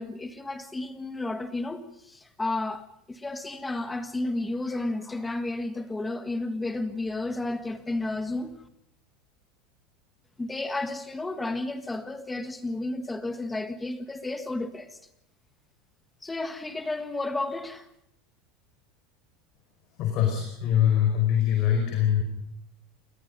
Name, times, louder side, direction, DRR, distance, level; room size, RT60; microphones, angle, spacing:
voice 1, 0.0-8.6 10.4-15.0 16.2-17.9, left 2 dB, 5° left, 1.6 m, -32 dB
voice 2, 20.0-22.2, left 10 dB, 40° left, 4.9 m, -23 dB
29.0 x 21.5 x 5.3 m
supercardioid pair, 180°, 0 cm